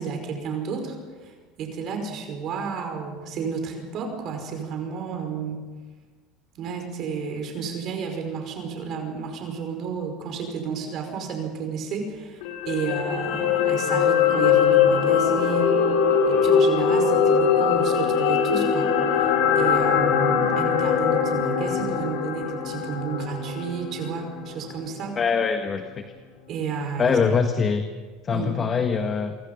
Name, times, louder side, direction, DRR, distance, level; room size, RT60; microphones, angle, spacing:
voice 1, 0.0-5.6 6.6-15.9 16.2-25.2 26.5-27.2 28.3-28.5, right 5 dB, 50° right, 4 dB, 5.3 m, -31 dB
sound 1, 12.4-24.7 25.1-25.2, left 7 dB, 75° left, 3.8 m, -21 dB
voice 2, 25.2-26.0 27.0-27.8 28.2-29.4, left 5 dB, 30° left, 6 dB, 1.6 m, -23 dB
29.0 x 23.5 x 5.6 m, 1.4 s
supercardioid pair, 100°, 0 cm